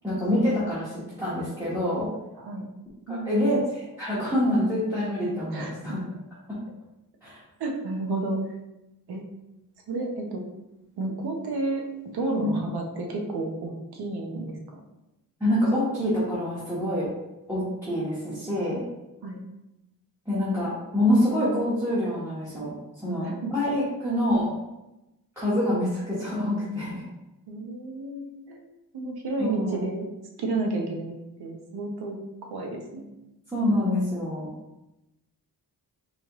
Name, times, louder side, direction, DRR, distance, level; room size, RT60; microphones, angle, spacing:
voice 1, 0.0-2.1 3.2-6.0 6.5-6.6 7.2-7.4 12.4-12.6 15.4-17.1 17.5-18.8 20.3-22.7 23.0-24.5 25.4-27.0 29.4-29.8 33.5-34.5, left 1 dB, 5° right, -12 dB, 1.2 m, -26 dB
voice 2, 2.3-2.7 3.1-3.4 5.5-5.7 7.6-8.4 9.1-9.2 9.9-10.4 11.0-11.8 12.1-14.8 19.2-19.4 23.1-23.5 27.5-28.6 28.9-30.1 30.4-31.1 31.4-32.2 32.4-33.1, right 2 dB, 80° right, 1 dB, 0.9 m, -31 dB
4.1 x 3.1 x 2.9 m, 0.95 s
wide cardioid pair, 145°, 38 cm